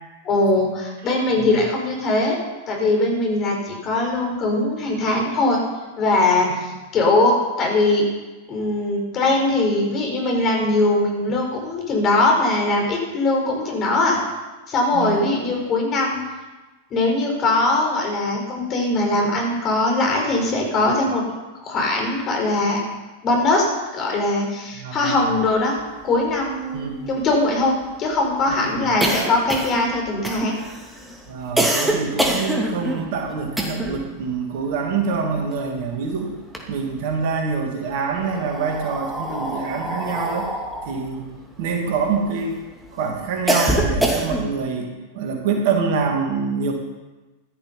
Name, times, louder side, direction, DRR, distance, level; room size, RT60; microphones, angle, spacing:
voice 1, 0.2-2.4 2.7-5.6 6.0-8.1 8.5-14.2 14.7-16.2 16.9-21.2 21.6-22.8 23.2-25.8 26.0-30.6, left 2 dB, 30° left, 0 dB, 5.1 m, -21 dB
voice 2, 1.0-1.6 14.9-15.6 24.7-25.3 26.7-27.2 28.5-28.8 31.3-36.4 36.7-40.5 40.8-41.3 41.6-42.6 42.9-46.7, right 5 dB, 50° right, 2 dB, 2.5 m, -26 dB
sound 1, 25.9-26.0 26.2-26.3 26.6-34.1 34.4-35.9 36.3-37.2 38.0-42.5 42.9-44.6, right 1 dB, 5° right, 2.6 m, -25 dB
15.5 x 12.5 x 5.6 m, 1.2 s
figure-of-eight pair, 90°, 0 cm